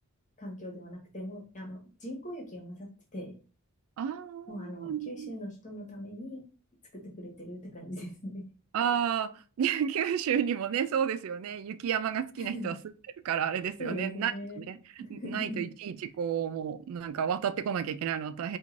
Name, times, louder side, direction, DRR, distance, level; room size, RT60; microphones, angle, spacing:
voice 1, 0.4-3.3 4.5-6.5 6.9-8.4 12.4-12.7 13.8-14.7 15.0-15.6, equal, 35° left, 1.3 m, -40 dB
voice 2, 4.0-5.3 8.7-12.8 13.2-18.6, right 8 dB, 70° right, 0.3 m, -31 dB
4.5 x 2.7 x 2.5 m
head